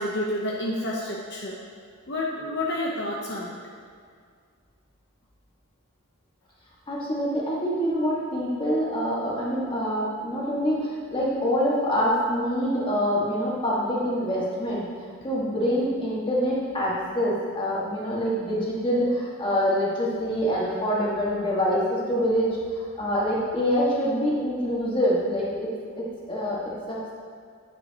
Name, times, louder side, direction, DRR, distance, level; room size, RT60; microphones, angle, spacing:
voice 1, 0.0-1.6 2.1-3.6, left 1 dB, 55° left, -4 dB, 0.9 m, -29 dB
voice 2, 6.9-14.9 15.2-25.7 26.0-26.6 26.9-27.1, equal, 25° left, -6 dB, 1.8 m, -25 dB
9.9 x 8.6 x 3.0 m, 2.1 s
head